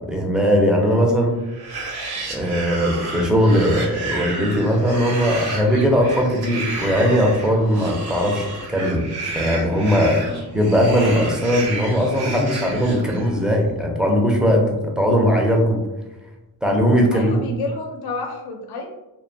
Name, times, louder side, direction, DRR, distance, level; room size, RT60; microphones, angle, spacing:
voice 1, 0.1-1.4 2.3-9.1 9.3-10.3 10.5-15.8 16.6-17.5, equal, ahead, 0 dB, 0.3 m, -19 dB
sound 1, 1.5-13.5, right 2 dB, 75° right, 0.7 m, -31 dB
voice 2, 17.1-18.9, left 3 dB, 80° left, 2 dB, 0.5 m, -30 dB
2.5 x 2.1 x 2.5 m, 1.0 s
cardioid pair, 120°, 38 cm